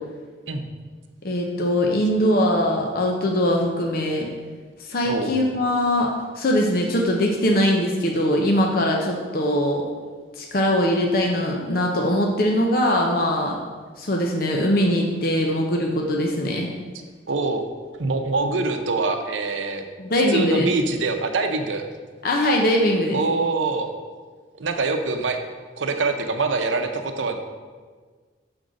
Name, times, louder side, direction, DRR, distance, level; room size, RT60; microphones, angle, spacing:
voice 1, 1.2-4.3 4.8-9.8 10.4-13.6 14.0-16.7 20.0-20.7 22.2-23.2, left 1 dB, 50° left, 1 dB, 0.6 m, -21 dB
voice 2, 17.3-17.6 18.0-19.8 20.3-21.9 23.1-23.9 24.6-25.4 25.8-27.4, right 3 dB, 85° right, 5 dB, 0.7 m, -24 dB
6.2 x 3.9 x 6.2 m, 1.5 s
head